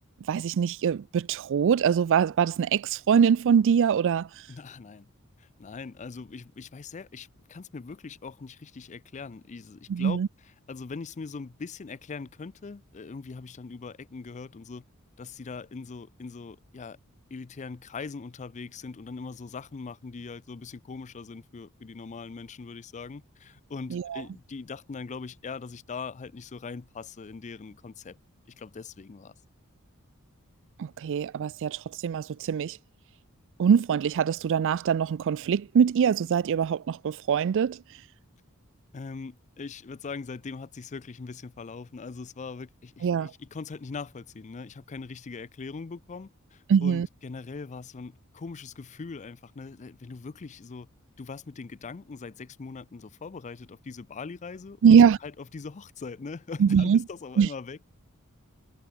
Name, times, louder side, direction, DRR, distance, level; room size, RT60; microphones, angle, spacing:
voice 1, 0.3-4.3 9.9-10.3 23.9-24.2 30.8-32.8 33.6-37.8 43.0-43.3 46.7-47.1 54.8-55.2 56.6-57.0 57.4-57.5, right 7 dB, 60° right, 0.3 m, -23 dB
voice 2, 4.5-5.1 5.4-10.2 10.7-14.8 15.2-17.0 17.3-28.2 28.6-29.3 38.9-50.9 51.2-57.8, left 4 dB, 35° left, 0.5 m, -41 dB
head